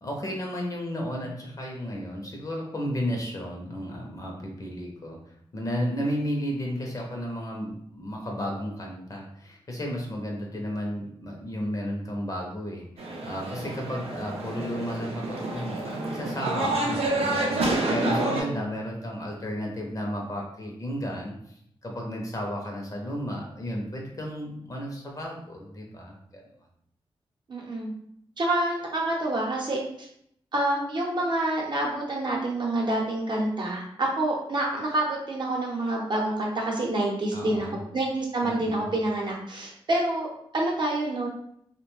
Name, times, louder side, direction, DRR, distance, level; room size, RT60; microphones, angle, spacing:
voice 1, 0.0-21.3 21.8-26.4 37.3-37.8 38.4-38.9, equal, 35° left, -1 dB, 0.6 m, -33 dB
sound 1, 13.0-18.4, right 2 dB, 90° right, 0.5 m, -28 dB
voice 2, 18.2-18.7 27.5-27.9 28.4-30.1 30.5-37.7 37.9-40.3 40.5-41.3, right 1 dB, 50° right, -1 dB, 0.7 m, -27 dB
2.7 x 2.1 x 3.0 m, 0.71 s
wide cardioid pair, 130°, 10 cm